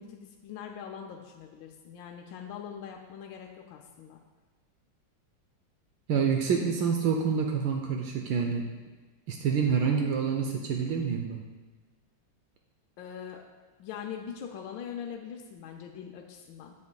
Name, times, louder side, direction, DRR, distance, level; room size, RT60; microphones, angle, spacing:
voice 1, 0.0-4.2 13.0-13.4 13.8-16.7, left 8 dB, 80° left, 2 dB, 1.3 m, -42 dB
voice 2, 6.1-8.7 9.3-11.4, right 6 dB, 80° right, 2 dB, 1.3 m, -27 dB
8.5 x 7.1 x 2.2 m, 1.4 s
omnidirectional pair, 2.1 m